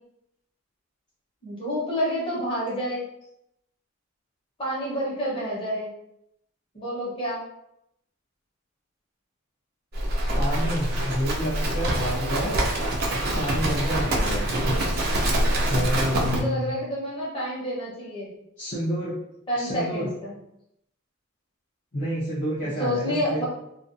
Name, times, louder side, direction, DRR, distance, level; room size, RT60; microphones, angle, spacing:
voice 1, 1.4-3.0 4.6-5.9 6.7-7.4 16.1-18.3 19.5-20.4 22.6-23.5, equal, 25° left, -6 dB, 0.9 m, -29 dB
Livestock farm animals working animals, 9.9-16.4, right 1 dB, 45° right, 0.4 m, -25 dB
voice 2, 10.4-12.6 13.3-14.5 15.7-16.7 18.6-19.1 19.6-20.1 21.9-23.5, equal, 40° left, -8 dB, 0.5 m, -29 dB
2.4 x 2.3 x 2.5 m, 0.79 s
head